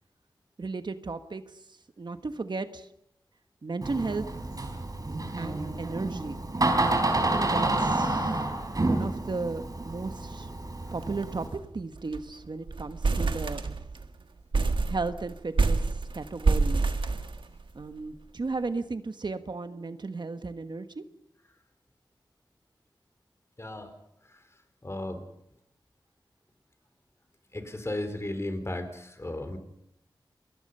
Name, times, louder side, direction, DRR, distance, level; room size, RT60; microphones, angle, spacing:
voice 1, 0.6-1.4 2.0-2.9 3.6-4.7 5.4-6.4 7.2-8.4 8.9-10.5 10.9-13.6 14.9-15.8 16.1-16.8 17.7-21.0, right 3 dB, 65° right, 9 dB, 1.4 m, -35 dB
Door, 3.8-11.5, right 2 dB, 45° right, 4.5 m, -29 dB
sound 1, 11.0-11.2 11.5-11.6 11.9-12.3 12.7-14.1 14.5-17.8, right 3 dB, 80° right, 1.7 m, -27 dB
voice 2, 23.6-23.9 24.2-25.3 27.5-29.6, left 1 dB, 35° left, 8 dB, 4.1 m, -35 dB
28.5 x 22.0 x 5.6 m, 0.75 s
wide cardioid pair, 70°, 8 cm